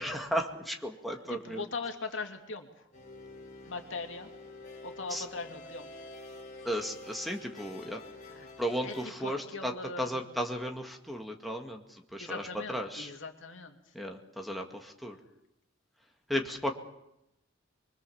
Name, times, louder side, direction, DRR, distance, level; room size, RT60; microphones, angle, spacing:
voice 1, 0.0-1.6 5.1-5.2 6.6-8.0 8.6-9.7 10.0-13.1 13.9-15.2 16.3-16.7, equal, ahead, 2 dB, 2.1 m, -35 dB
voice 2, 1.3-2.9 3.6-4.3 4.8-5.9 8.3-8.5 8.8-10.3 12.2-13.9, left 3 dB, 70° left, 5 dB, 2.9 m, -40 dB
sound 1, 2.9-9.1, left 2 dB, 40° left, 6.8 m, -48 dB
24.5 x 24.0 x 7.2 m, 0.85 s
head